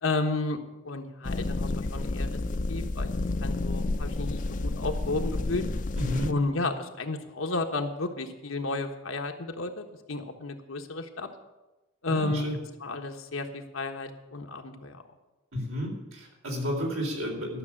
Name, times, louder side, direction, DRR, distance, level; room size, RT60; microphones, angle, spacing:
voice 1, 0.0-2.3 2.7-3.1 3.4-5.6 6.3-11.3 12.0-12.5 12.8-15.0, left 3 dB, 90° left, 4 dB, 1.3 m, -32 dB
sound 1, 1.2-6.3, left 2 dB, 40° left, 0.5 m, -30 dB
voice 2, 6.0-6.3 12.1-12.6 15.5-17.6, equal, 90° right, 0 dB, 3.9 m, -31 dB
12.5 x 6.8 x 8.6 m, 1.1 s
head